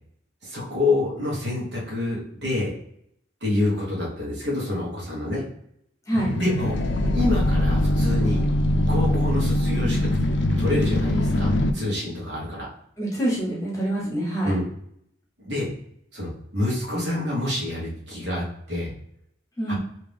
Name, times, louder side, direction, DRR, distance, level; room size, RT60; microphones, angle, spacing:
voice 1, 0.4-2.7 3.4-5.4 6.3-6.8 7.1-8.4 8.9-10.3 10.6-12.7 14.4-14.6 15.4-15.7 16.1-18.9 19.7-19.8, left 2 dB, 65° right, -4 dB, 1.4 m, -27 dB
sound 1, 6.1-11.7, left 1 dB, 65° left, 0.4 m, -22 dB
voice 2, 6.1-6.4 13.0-14.6 19.6-19.8, right 1 dB, 15° left, -4 dB, 1.1 m, -26 dB
3.3 x 2.9 x 3.4 m, 0.70 s
head